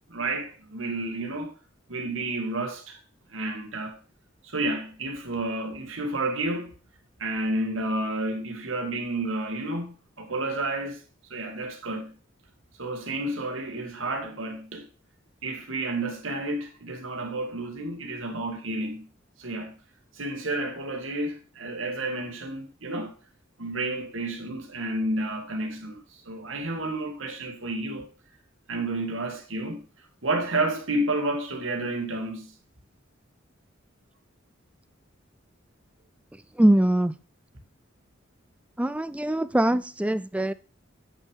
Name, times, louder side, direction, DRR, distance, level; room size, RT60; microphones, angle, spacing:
voice 1, 0.1-1.5 1.9-3.0 3.3-4.0 4.4-6.8 7.2-11.0 11.3-12.1 12.8-14.9 15.4-19.1 19.4-19.8 20.1-23.2 23.6-28.1 28.7-29.8 30.2-32.5, right 2 dB, 85° right, 2.2 m, -31 dB
voice 2, 36.3-37.2 38.8-40.5, right 1 dB, 5° right, 0.4 m, -23 dB
8.6 x 6.0 x 3.6 m
head